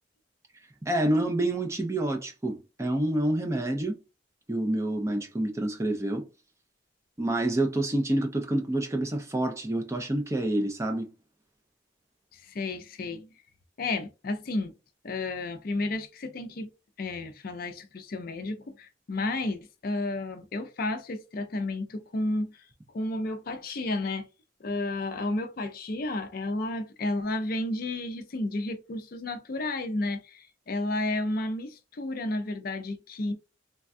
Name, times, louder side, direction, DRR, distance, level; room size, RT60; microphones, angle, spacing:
voice 1, 0.9-4.0 4.5-6.3 7.2-11.1, right 1 dB, 15° right, 0.4 m, -28 dB
voice 2, 12.3-13.3 13.8-14.7 15.0-16.7 17.0-22.5 22.9-24.3 24.6-33.3, left 2 dB, 50° left, 0.4 m, -32 dB
3.3 x 2.2 x 2.5 m
head